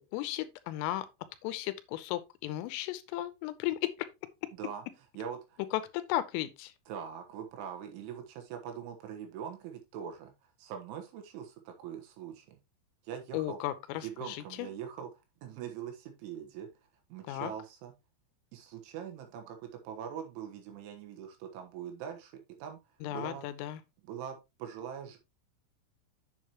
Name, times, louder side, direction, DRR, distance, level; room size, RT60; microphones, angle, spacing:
voice 1, 0.1-1.1 1.4-3.9 5.7-6.7 13.3-14.7 17.3-17.5 23.0-23.8, left 14 dB, 85° left, 3.4 m, -35 dB
voice 2, 5.2-5.6 6.9-12.6 13.0-13.6 14.0-15.1 15.4-16.7 17.1-17.9 18.5-22.8 23.1-23.5 24.0-25.2, right 8 dB, 75° right, 3.6 m, -42 dB
8.6 x 7.5 x 2.9 m
omnidirectional pair, 5.9 m